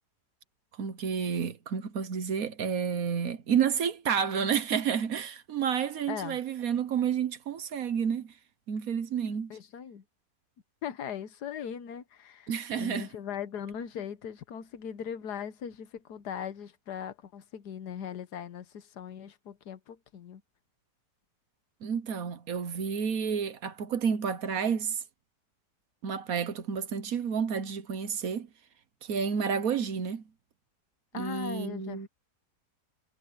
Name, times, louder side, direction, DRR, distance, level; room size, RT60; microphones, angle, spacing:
voice 1, 0.8-8.3 8.7-9.6 12.5-13.1 21.8-25.0 26.0-28.5 29.0-30.2 31.1-32.1, right 7 dB, 60° right, 1.4 m, -30 dB
voice 2, 6.1-6.4 9.5-10.0 10.8-20.4 31.1-32.1, left 8 dB, 75° left, 1.5 m, -39 dB
omnidirectional pair, 1.8 m